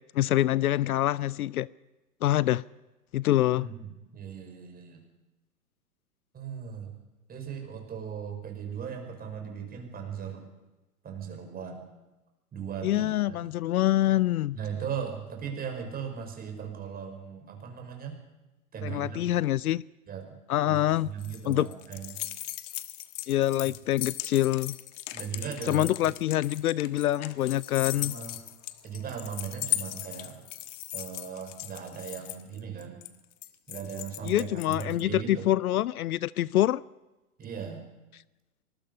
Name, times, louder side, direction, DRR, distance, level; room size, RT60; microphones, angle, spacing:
voice 1, 0.1-1.7 2.2-2.6 3.1-3.7 12.8-14.6 18.8-19.8 20.5-21.1 21.5-21.7 23.3-24.8 25.7-28.2 34.2-36.8, left 14 dB, 70° left, 0.6 m, -25 dB
voice 2, 3.6-5.0 6.3-6.9 7.3-10.4 11.0-11.9 12.5-13.5 14.5-18.2 18.7-19.4 20.1-20.4 20.7-22.2 25.1-25.9 27.9-28.4 28.8-30.4 30.9-33.0 33.7-35.5 37.4-37.8, right 7 dB, 20° right, 5.3 m, -38 dB
sound 1, 20.7-35.0, left 15 dB, 50° left, 1.5 m, -38 dB
25.5 x 20.5 x 5.5 m
hypercardioid pair, 125°, 47 cm